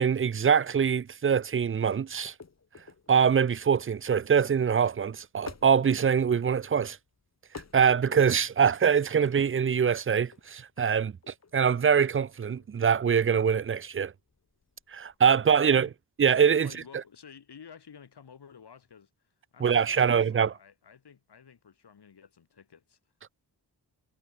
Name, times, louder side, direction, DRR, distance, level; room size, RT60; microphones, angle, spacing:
voice 1, 0.0-2.3 3.1-7.0 7.7-14.1 14.9-15.9 16.2-16.7 19.6-20.5, right 7 dB, 35° right, 0.4 m, -24 dB
sound 1, 2.2-15.2, left 5 dB, 40° left, 4.3 m, -51 dB
voice 2, 15.5-15.9 16.6-23.0, left 7 dB, 75° left, 8.0 m, -52 dB
wide cardioid pair, 175°, 40 cm